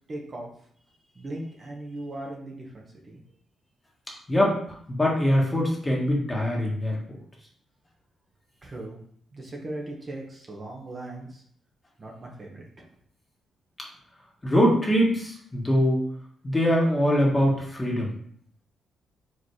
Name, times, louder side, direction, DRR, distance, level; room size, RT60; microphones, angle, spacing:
voice 1, 0.1-0.5 1.1-3.2 8.6-9.0 9.3-11.4 12.0-12.9, right 1 dB, 35° right, -1 dB, 1.3 m, -38 dB
voice 2, 4.9-7.0 14.4-16.0 16.4-18.1, equal, 20° left, -2 dB, 1.8 m, -22 dB
5.0 x 4.0 x 4.8 m, 0.62 s
cardioid pair, 95°, 0 cm